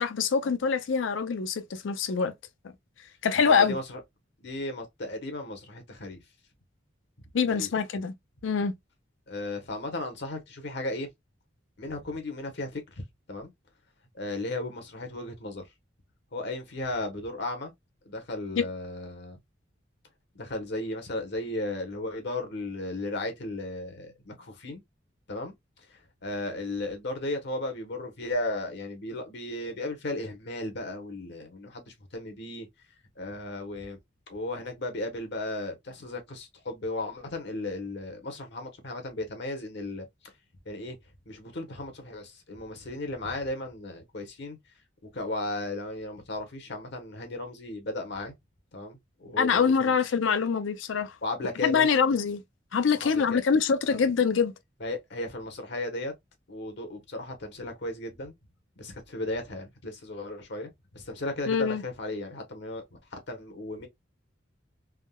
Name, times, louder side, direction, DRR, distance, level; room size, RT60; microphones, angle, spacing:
voice 1, 0.0-2.3 3.2-3.8 7.3-8.1 8.4-8.7 18.6-18.7 49.4-51.2 51.6-52.4 52.7-54.5 61.5-61.8, left 6 dB, 85° left, 0.5 m, -24 dB
voice 2, 3.4-4.0 4.4-6.2 7.5-7.7 9.3-11.1 11.8-12.8 13.3-13.5 14.1-15.6 16.3-17.7 18.1-19.4 20.3-24.8 25.3-25.5 25.9-32.7 33.2-34.0 34.3-40.1 40.7-41.0 41.3-44.6 45.1-48.3 48.7-49.9 51.2-51.9 53.0-53.4 53.9-54.0 54.8-56.1 56.5-58.3 58.8-63.9, left 2 dB, 65° left, 0.9 m, -35 dB
3.5 x 2.1 x 2.2 m
head